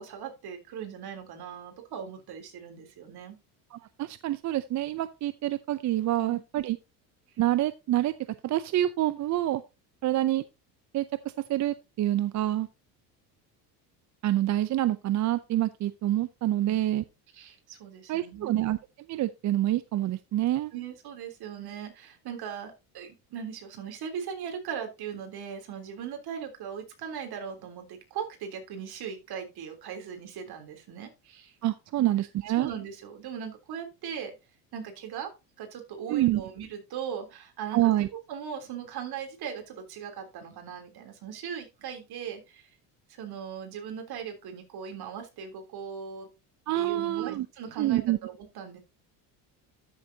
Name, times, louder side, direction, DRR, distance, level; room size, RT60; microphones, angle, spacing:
voice 1, 0.0-3.4 6.2-6.4 16.6-16.8 17.3-18.6 20.7-31.6 32.0-32.1 32.6-34.3 34.7-35.3 35.6-37.9 38.3-42.7 43.1-46.3 46.7-48.8, right 7 dB, 55° right, 3.4 m, -39 dB
voice 2, 3.7-6.8 7.4-8.1 8.4-9.6 10.0-10.4 10.9-12.7 14.2-17.0 18.1-18.8 19.1-20.7 31.6-32.7 36.1-36.4 37.7-38.1 46.7-47.5 47.8-48.2, right 14 dB, 40° right, 0.5 m, -27 dB
13.0 x 7.0 x 2.8 m
supercardioid pair, 100°, 45 cm